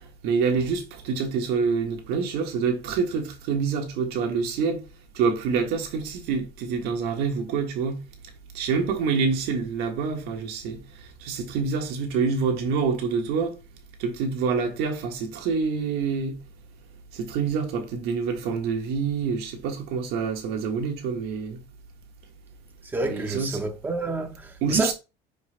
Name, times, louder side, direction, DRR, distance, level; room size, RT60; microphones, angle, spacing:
voice 1, 0.0-4.8 5.1-8.0 8.5-13.5 14.0-16.4 17.1-21.6 23.1-23.6 24.6-24.9, right 5 dB, 55° right, 1.6 m, -26 dB
voice 2, 22.8-24.9, right 2 dB, 10° right, 1.0 m, -29 dB
10.0 x 5.3 x 2.2 m
cardioid pair, 175°, 20 cm